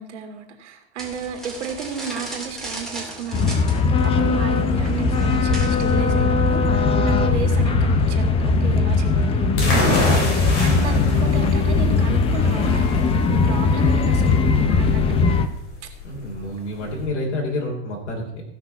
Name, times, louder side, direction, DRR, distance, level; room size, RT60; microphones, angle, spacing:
voice 1, 0.0-14.5 14.8-15.0, right 6 dB, 80° right, 4 dB, 2.1 m, -33 dB
sound 1, 1.0-6.1, right 2 dB, ahead, 2.5 m, -36 dB
sound 2, 3.3-15.5, left 4 dB, 15° left, 0.6 m, -19 dB
sound 3, 9.6-17.0, left 2 dB, 40° left, 3.7 m, -27 dB
voice 2, 14.4-15.2 16.0-18.3, left 1 dB, 85° left, -1 dB, 3.5 m, -29 dB
16.0 x 6.0 x 5.7 m, 0.81 s
supercardioid pair, 145°, 35 cm